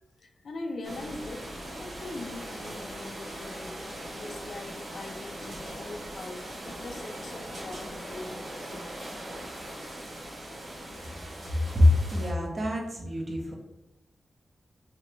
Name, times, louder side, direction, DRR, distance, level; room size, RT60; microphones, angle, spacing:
voice 1, 0.2-8.5, left 2 dB, 65° left, 3 dB, 0.4 m, -42 dB
sound 1, 0.8-12.3, right 1 dB, 75° right, 1.2 m, -40 dB
voice 2, 11.7-13.5, left 1 dB, 40° right, 0 dB, 0.8 m, -24 dB
3.1 x 3.0 x 3.3 m, 0.90 s
wide cardioid pair, 120°, 0 cm